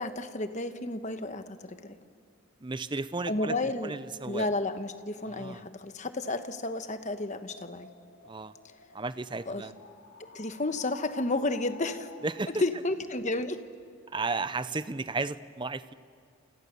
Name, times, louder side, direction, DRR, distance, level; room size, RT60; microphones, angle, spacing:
voice 1, 0.0-1.9 3.3-3.9 4.2-7.9 9.5-9.6 10.3-12.1 12.6-13.6, left 2 dB, 35° left, 9 dB, 1.1 m, -32 dB
voice 2, 2.6-3.6 3.8-4.5 5.2-5.6 8.3-8.5 8.9-9.7 12.2-12.6 14.1-15.9, right 3 dB, 20° right, 14 dB, 0.6 m, -34 dB
sound 1, 6.8-12.6, left 4 dB, 65° left, 2.7 m, -51 dB
30.0 x 28.0 x 6.9 m, 2.2 s
head